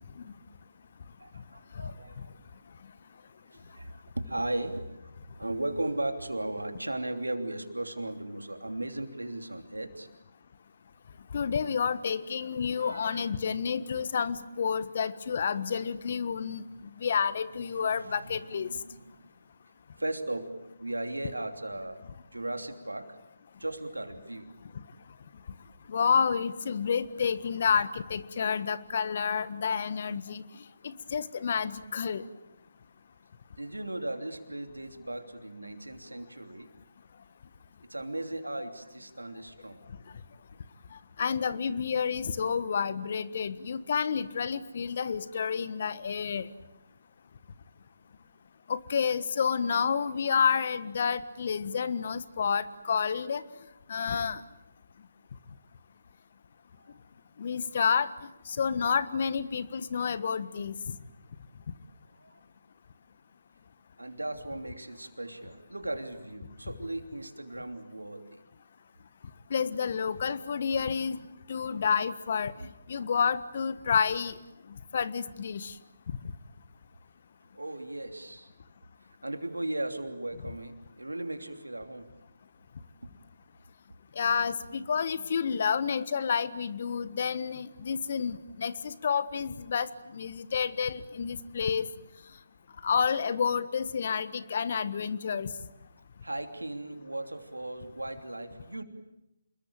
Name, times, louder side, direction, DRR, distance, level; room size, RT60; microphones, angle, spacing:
voice 1, 1.2-2.3 3.5-10.1 12.8-13.3 17.4-19.3 20.0-22.0 22.3-23.2 23.6-24.5 33.6-36.7 37.8-39.8 56.8-57.0 62.1-62.4 64.0-68.4 77.5-78.5 79.2-82.1 96.2-98.8, right 1 dB, 90° right, 7 dB, 3.1 m, -37 dB
voice 2, 11.3-16.6 17.0-18.7 25.9-30.4 30.8-32.2 41.2-46.5 48.7-53.4 53.9-54.4 57.4-58.1 58.5-61.0 69.5-71.2 71.5-72.5 72.9-74.4 74.9-75.7 84.1-91.9 92.8-95.5, left 6 dB, 50° left, 15 dB, 1.5 m, -29 dB
27.5 x 21.5 x 9.0 m, 0.92 s
figure-of-eight pair, 145°, 0 cm